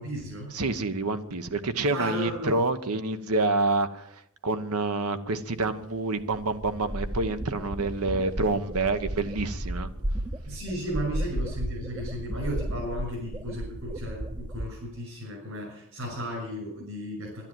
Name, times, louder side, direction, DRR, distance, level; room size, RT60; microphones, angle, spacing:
voice 1, 0.0-0.5 1.9-2.6 10.5-17.5, equal, 65° right, -6 dB, 7.0 m, -34 dB
voice 2, 0.5-9.9, right 2 dB, 85° right, 11 dB, 1.1 m, -28 dB
sound 1, 5.8-5.9 6.2-14.7, right 1 dB, 20° right, 0.7 m, -34 dB
11.5 x 10.5 x 9.1 m, 0.74 s
head